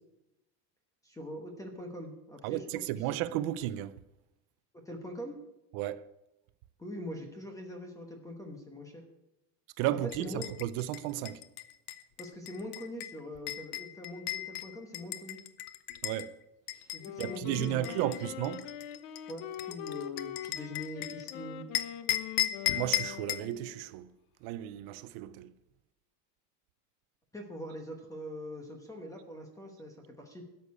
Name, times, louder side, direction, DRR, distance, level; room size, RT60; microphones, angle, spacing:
voice 1, 1.0-3.1 4.7-5.4 6.8-9.0 10.2-10.5 12.2-15.4 16.9-17.9 19.3-21.7 27.3-30.4, left 1 dB, 5° left, 1.1 m, -43 dB
voice 2, 2.4-4.0 5.7-6.1 9.8-11.4 16.0-16.4 17.2-18.7 22.7-24.1 24.4-25.5, right 13 dB, 45° right, 0.5 m, -34 dB
sound 1, 10.1-16.3 16.7-21.3 21.7-23.5, left 13 dB, 45° left, 0.8 m, -36 dB
Wind instrument woodwind instrument, 17.0-23.8, left 10 dB, 70° left, 1.1 m, -43 dB
13.0 x 6.8 x 9.6 m
cardioid pair, 170°, 48 cm